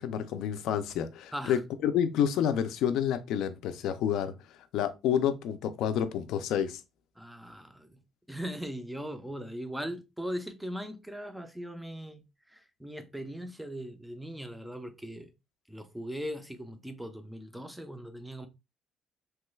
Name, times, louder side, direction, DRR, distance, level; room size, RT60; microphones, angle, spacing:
voice 1, 0.0-4.3 4.7-6.8, left 9 dB, 65° left, 0.4 m, -29 dB
voice 2, 7.2-8.0 8.3-12.2 12.5-15.3 15.7-18.5, equal, ahead, 0.3 m, -39 dB
3.1 x 2.2 x 3.1 m
cardioid pair, 175°, 0 cm